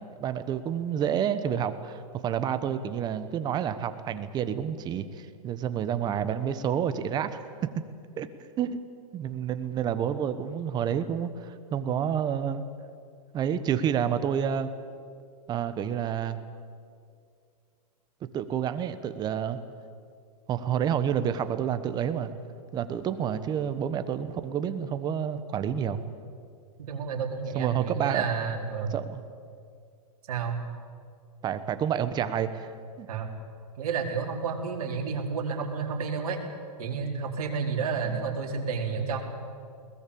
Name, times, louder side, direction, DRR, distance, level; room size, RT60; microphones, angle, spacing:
voice 1, 0.2-7.8 8.2-8.3 8.6-8.8 9.1-12.6 13.3-14.7 15.5-16.4 18.3-19.6 20.5-22.3 22.7-26.0 27.5-28.3 28.9-29.2 31.4-32.7 33.0-33.1 38.1-38.2, right 8 dB, 20° right, 11 dB, 1.2 m, -29 dB
voice 2, 26.8-29.0 30.3-30.6 33.1-33.3 33.8-36.4 36.8-39.2, right 5 dB, 65° right, 1 dB, 4.4 m, -30 dB
21.5 x 19.0 x 8.6 m, 2.3 s
hypercardioid pair, 145°, 20 cm